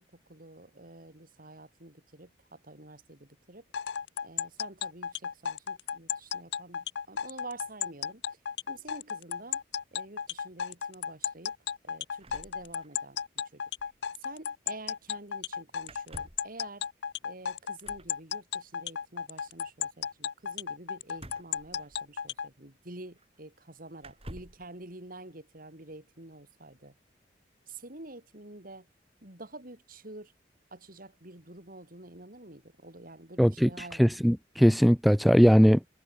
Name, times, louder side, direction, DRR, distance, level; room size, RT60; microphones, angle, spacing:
voice 1, 0.0-3.6 4.2-8.4 8.7-9.6 9.9-11.5 11.8-13.2 13.5-13.6 14.2-16.9 17.2-27.0 27.7-28.9 29.2-30.3 30.7-34.0, right 2 dB, 50° right, 4.2 m, -48 dB
sound 1, 3.7-22.5, left 8 dB, 65° left, 0.6 m, -34 dB
sound 2, 12.2-13.3 13.5-13.6 13.8-14.0 15.8-16.5 17.8-18.2 21.1-22.3 23.2-23.3 24.0-24.7, right 1 dB, 35° right, 7.2 m, -49 dB
voice 2, 33.4-33.7 34.0-35.9, equal, ahead, 0.4 m, -20 dB
head